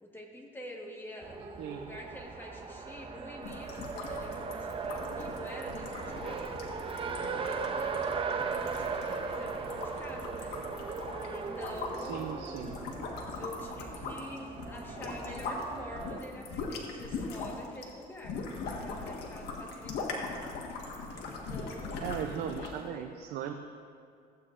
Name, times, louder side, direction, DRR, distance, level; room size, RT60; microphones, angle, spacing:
voice 1, 0.0-6.6 7.0-10.5 11.2-12.7 13.3-20.5 21.3-22.0 22.5-23.1, left 1 dB, 10° left, -1 dB, 1.4 m, -47 dB
Race car auto racing, 1.2-16.2, right 5 dB, 30° right, 0.6 m, -38 dB
voice 2, 1.6-1.9 12.0-12.8 22.0-23.5, right 9 dB, 75° right, 6 dB, 0.5 m, -37 dB
Water Bubbles, 3.4-15.6 15.9-22.8, left 3 dB, 75° left, 1.5 m, -40 dB
15.0 x 8.6 x 2.5 m, 2.3 s
cardioid pair, 110°, 17 cm